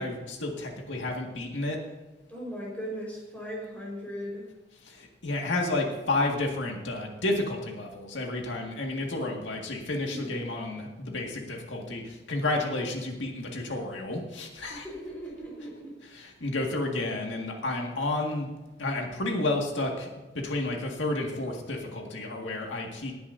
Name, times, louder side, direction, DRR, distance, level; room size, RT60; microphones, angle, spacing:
voice 1, 0.0-1.8 4.8-14.9 16.0-18.5 18.8-20.1 20.3-23.1, left 2 dB, 85° left, 1 dB, 1.9 m, -31 dB
voice 2, 2.3-4.5 10.1-10.4 14.7-15.9, equal, 10° left, -4 dB, 4.5 m, -38 dB
19.0 x 10.0 x 2.7 m, 1.2 s
head